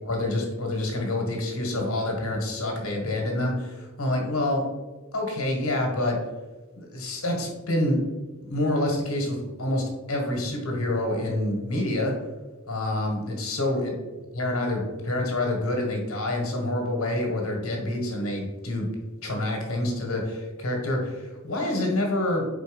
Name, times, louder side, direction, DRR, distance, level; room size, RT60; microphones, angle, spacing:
voice 1, 0.0-4.6 5.1-6.2 6.8-8.0 8.4-12.1 12.7-13.9 14.3-18.9 19.2-22.5, left 1 dB, 85° left, 1 dB, 1.6 m, -27 dB
4.7 x 4.0 x 5.2 m, 1.2 s
head